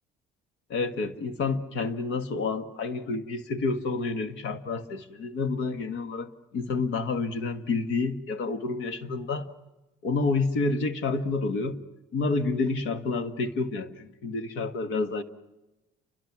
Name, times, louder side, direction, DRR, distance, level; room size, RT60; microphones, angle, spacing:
voice 1, 0.7-9.5 10.0-11.7 12.1-15.2, left 3 dB, 70° left, 8 dB, 1.7 m, -29 dB
29.5 x 24.5 x 6.1 m, 1.0 s
cardioid pair, 100°, 20 cm